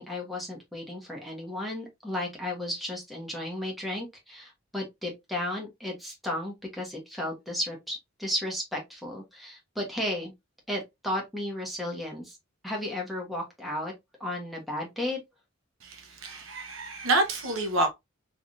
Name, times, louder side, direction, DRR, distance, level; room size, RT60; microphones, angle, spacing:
voice 1, 0.0-10.3 10.7-12.4 12.6-13.9 14.2-15.2, left 1 dB, ahead, 1.3 m, -34 dB
voice 2, 15.8-17.9, right 2 dB, 75° right, 1.0 m, -28 dB
3.5 x 3.3 x 2.5 m
head